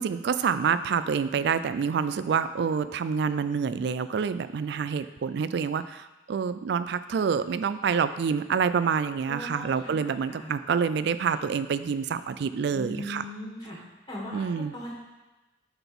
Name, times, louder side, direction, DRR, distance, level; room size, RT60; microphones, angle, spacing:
voice 1, 0.0-13.2 14.3-14.7, right 6 dB, 65° right, 13 dB, 0.3 m, -27 dB
voice 2, 9.3-10.1 10.4-10.5 12.7-13.8 14.1-14.9, left 1 dB, 25° left, -4 dB, 1.7 m, -39 dB
6.7 x 4.0 x 6.0 m, 1.1 s
head